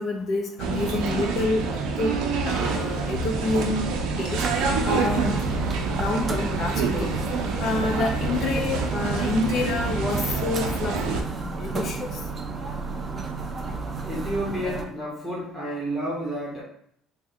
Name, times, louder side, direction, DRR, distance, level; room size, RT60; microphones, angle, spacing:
voice 1, 0.0-1.6 2.0-2.1 2.5-3.9 4.2-4.4 4.8-5.4 5.9-7.1 7.6-12.1, left 3 dB, 45° left, 2 dB, 0.7 m, -28 dB
sound 1, 0.6-11.2, right 4 dB, 85° right, 0.5 m, -27 dB
sound 2, 4.4-14.8, right 4 dB, 30° right, 0.4 m, -32 dB
voice 2, 14.0-16.6, right 1 dB, ahead, -8 dB, 1.0 m, -30 dB
3.1 x 2.2 x 3.7 m, 0.65 s
cardioid pair, 130°, 0 cm